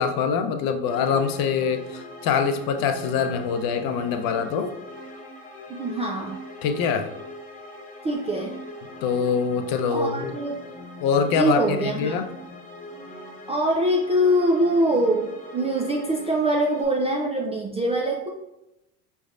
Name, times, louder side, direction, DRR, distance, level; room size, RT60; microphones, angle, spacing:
voice 1, 0.0-4.7 6.6-7.1 9.0-10.4 11.0-12.3, left 6 dB, 50° left, 7 dB, 0.6 m, -24 dB
sound 1, 0.9-16.8, left 1 dB, 15° left, 1.0 m, -41 dB
voice 2, 5.7-6.4 8.0-8.6 9.9-10.6 11.3-12.2 13.5-18.3, right 1 dB, 15° right, -1 dB, 0.3 m, -23 dB
5.1 x 3.3 x 2.4 m, 0.89 s
hypercardioid pair, 85°, 47 cm